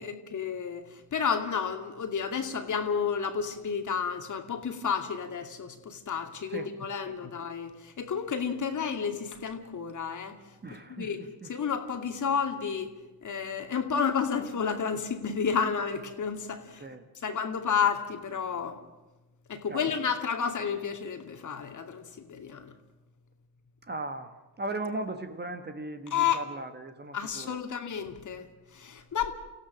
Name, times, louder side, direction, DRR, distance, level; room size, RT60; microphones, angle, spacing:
voice 1, 0.0-10.4 10.7-12.9 13.2-16.8 17.2-18.8 19.5-22.7 26.1-26.4 27.1-29.3, left 6 dB, 35° left, 5 dB, 2.5 m, -31 dB
voice 2, 10.6-11.1 11.4-11.5 16.8-17.1 19.7-19.9 23.8-27.6, right 2 dB, 20° right, 7 dB, 1.7 m, -37 dB
29.5 x 16.0 x 6.4 m, 1.1 s
figure-of-eight pair, 50°, 49 cm